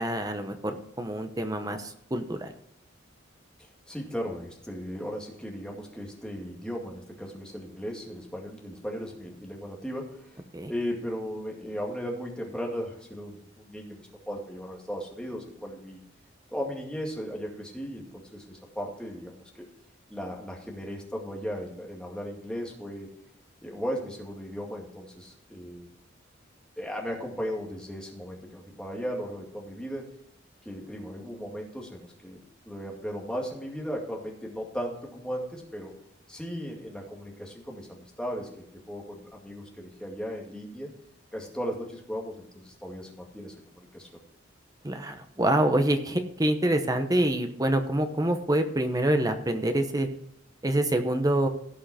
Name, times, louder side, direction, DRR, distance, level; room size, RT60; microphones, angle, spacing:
voice 1, 0.0-2.5 10.5-10.7 44.8-50.1 50.6-51.5, right 1 dB, 20° right, 7 dB, 1.0 m, -26 dB
voice 2, 3.6-16.0 16.5-19.7 20.1-23.1 23.6-25.9 26.8-30.0 30.6-32.4 32.7-36.0 36.3-38.5 38.9-40.9 41.3-44.1, equal, 5° left, -1 dB, 2.2 m, -36 dB
16.5 x 5.7 x 4.3 m, 0.77 s
head